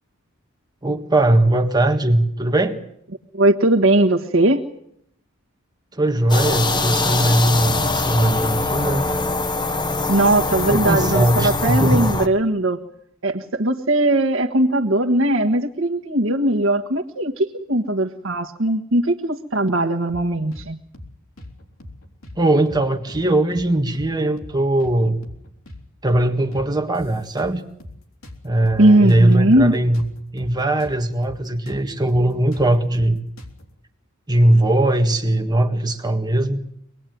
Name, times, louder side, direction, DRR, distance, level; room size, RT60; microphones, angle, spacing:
voice 1, 0.8-2.8 5.9-9.1 10.7-12.1 22.4-25.2 26.0-27.6 28.4-30.0 30.3-33.2 34.3-36.6, right 1 dB, 20° right, 5 dB, 1.7 m, -19 dB
voice 2, 3.3-4.7 10.1-12.8 13.2-20.8 28.8-29.7, right 1 dB, 65° right, 3 dB, 1.4 m, -19 dB
sound 1, 6.3-12.3, left 3 dB, 20° left, 1.2 m, -23 dB
sound 2, 20.1-20.7 20.9-21.1 21.4-22.4 22.7-22.8 23.1-24.1 24.4-24.5 24.8-25.8 26.1-26.2 26.5-28.0 28.2-31.0 31.2-31.4 31.7-33.7, left 1 dB, 75° left, 3.8 m, -40 dB
25.0 x 20.0 x 9.3 m, 0.74 s
head